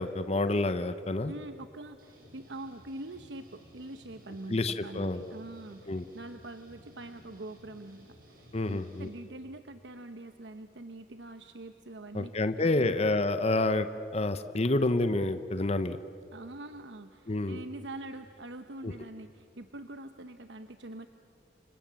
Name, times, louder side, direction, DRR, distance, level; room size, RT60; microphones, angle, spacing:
voice 1, 0.0-1.3 4.5-5.3 5.9-6.1 8.5-9.1 12.1-13.9 14.1-16.0 17.3-17.6 18.8-18.9, left 2 dB, 35° left, 10 dB, 0.9 m, -28 dB
voice 2, 1.3-12.3 12.7-13.0 16.3-21.1, right 2 dB, 80° right, 8 dB, 1.0 m, -44 dB
sound 1, 2.0-9.1, right 1 dB, 55° right, 6.9 m, -57 dB
29.5 x 25.0 x 7.6 m, 2.4 s
head